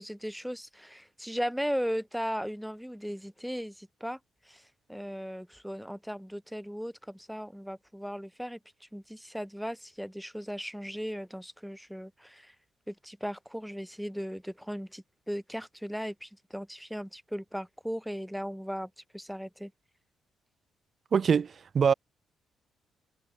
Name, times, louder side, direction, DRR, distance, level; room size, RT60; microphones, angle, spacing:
voice 1, 0.0-4.2 4.4-12.5 12.9-19.7, equal, ahead, 1.8 m, -37 dB
voice 2, 21.1-21.9, right 6 dB, 45° right, 0.3 m, -24 dB
cardioid pair, 90°, 0 cm